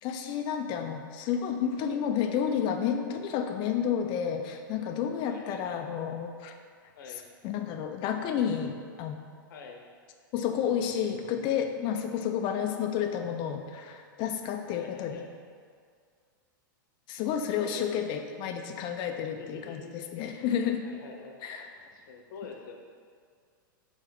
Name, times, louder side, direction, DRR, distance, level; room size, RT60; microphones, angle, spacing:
voice 1, 0.0-6.6 7.4-9.2 10.3-15.2 17.1-20.9 21.4-21.7, left 8 dB, 45° left, 5 dB, 0.7 m, -31 dB
voice 2, 5.2-5.8 6.9-7.2 9.5-9.9 12.6-12.8 14.7-15.3 17.6-18.2 19.4-20.0 20.8-21.4 21.9-22.7, left 5 dB, 70° left, 2 dB, 1.1 m, -46 dB
4.9 x 4.3 x 6.0 m, 2.1 s
hypercardioid pair, 115°, 11 cm